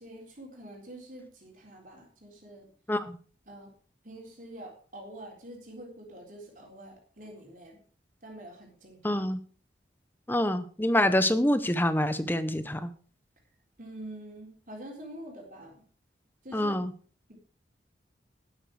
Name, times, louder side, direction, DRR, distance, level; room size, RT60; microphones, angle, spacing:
voice 1, 0.0-2.7 3.5-3.7 4.0-7.8 8.2-9.3 13.8-15.8 16.4-16.8, right 1 dB, 45° right, -1 dB, 3.9 m, -46 dB
voice 2, 9.0-9.4 10.3-12.9 16.5-16.9, left 1 dB, 10° left, 12 dB, 0.8 m, -26 dB
12.0 x 10.5 x 4.9 m, 0.41 s
head